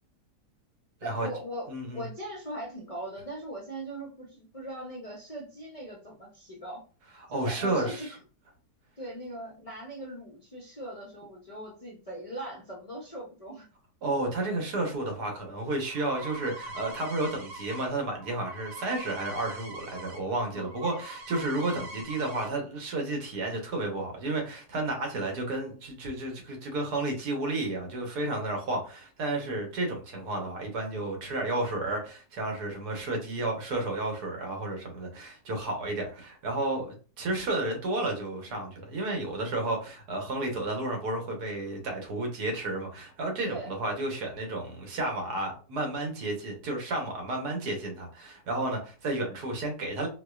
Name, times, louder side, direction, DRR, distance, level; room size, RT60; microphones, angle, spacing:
voice 1, 1.0-6.8 7.3-8.2 9.0-13.7 20.5-20.7 43.5-43.8, right 1 dB, 45° left, 0.4 m, -40 dB
voice 2, 1.7-2.0 7.3-8.1 14.0-50.1, right 2 dB, 75° right, 1.5 m, -32 dB
sound 1, 15.4-20.2 20.5-22.5, right 2 dB, 55° right, 0.8 m, -43 dB
4.5 x 2.2 x 2.3 m
omnidirectional pair, 1.7 m